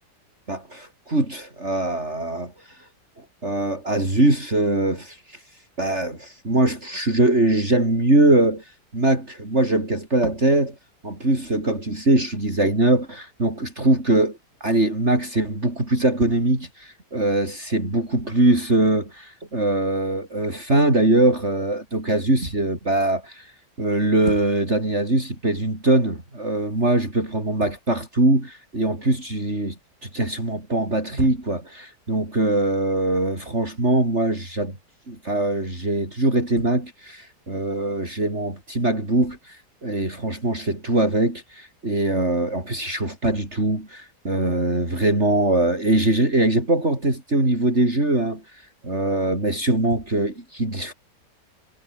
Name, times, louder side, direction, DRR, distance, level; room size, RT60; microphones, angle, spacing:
voice 1, 0.5-2.9 3.4-5.4 5.8-10.8 11.0-29.8 30.0-34.8 35.1-50.9, right 2 dB, 40° right, 6.4 m, -22 dB
omnidirectional pair, 1.8 m